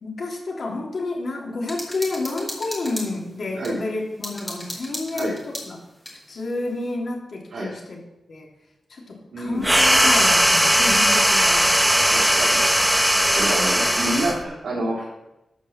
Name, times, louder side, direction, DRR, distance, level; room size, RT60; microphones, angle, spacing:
voice 1, 0.0-5.8 6.3-8.0 8.3-8.5 8.9-11.7 13.7-14.2, left 2 dB, 55° left, -2 dB, 3.3 m, -30 dB
sound 1, 1.6-3.7 4.2-6.2, left 1 dB, 10° left, 3.3 m, -35 dB
voice 2, 9.3-9.7 12.1-12.6 13.2-15.1, right 1 dB, 70° right, -7 dB, 4.0 m, -28 dB
sound 2, 9.6-14.4, equal, 5° right, 1.0 m, -18 dB
13.0 x 5.6 x 7.4 m, 0.93 s
wide cardioid pair, 125°, 0 cm